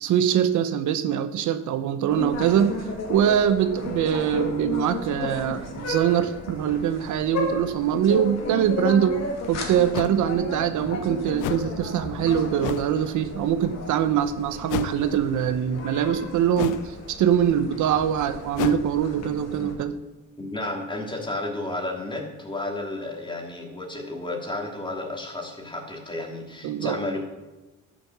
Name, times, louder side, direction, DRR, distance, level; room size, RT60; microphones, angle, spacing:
voice 1, 0.0-2.8 3.1-9.2 9.5-20.0 26.6-27.0, right 9 dB, 80° right, 10 dB, 0.9 m, -23 dB
sound 1, 2.1-19.7, left 3 dB, 60° left, 2.7 m, -34 dB
sound 2, 8.9-9.0 9.9-10.2 11.4-11.7 12.6-12.9 14.7-15.1 16.5-16.9 18.5-18.8, left 12 dB, 85° left, 0.6 m, -30 dB
voice 2, 20.4-27.2, left 2 dB, 15° left, 0 dB, 3.1 m, -32 dB
12.0 x 7.1 x 7.3 m, 1.1 s
cardioid pair, 90°, 30 cm